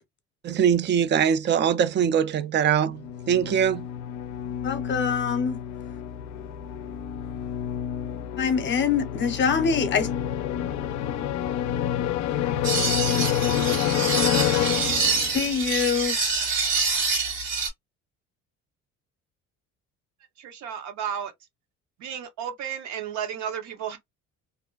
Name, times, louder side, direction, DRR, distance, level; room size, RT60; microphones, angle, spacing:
voice 1, 0.4-3.9, right 8 dB, 40° right, 0.4 m, -22 dB
sound 1, 2.9-15.6, left 10 dB, 70° left, 0.4 m, -28 dB
voice 2, 4.6-5.6 8.4-10.1 15.3-16.2, left 6 dB, 40° left, 0.7 m, -24 dB
sound 2, 12.6-17.7, right 4 dB, 90° right, 1.4 m, -26 dB
voice 3, 20.4-21.3 22.0-24.0, right 8 dB, 70° right, 0.8 m, -33 dB
2.5 x 2.1 x 2.3 m
cardioid pair, 95°, 30 cm